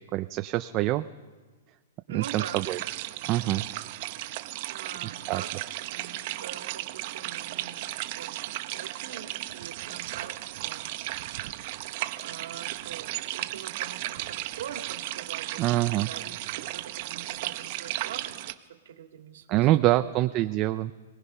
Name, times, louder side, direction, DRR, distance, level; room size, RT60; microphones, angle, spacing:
voice 1, 0.1-1.0 2.1-2.8 3.3-3.6 5.3-5.4 15.6-16.1 19.5-20.9, right 16 dB, 30° right, 9 dB, 0.5 m, -25 dB
voice 2, 2.1-2.7 4.6-11.2 12.2-18.4 18.7-20.3, right 8 dB, 70° right, 4 dB, 2.1 m, -44 dB
sound 1, 2.2-18.5, right 16 dB, 45° right, 0.9 m, -35 dB
28.0 x 19.0 x 5.6 m, 1.4 s
hypercardioid pair, 155°, 0 cm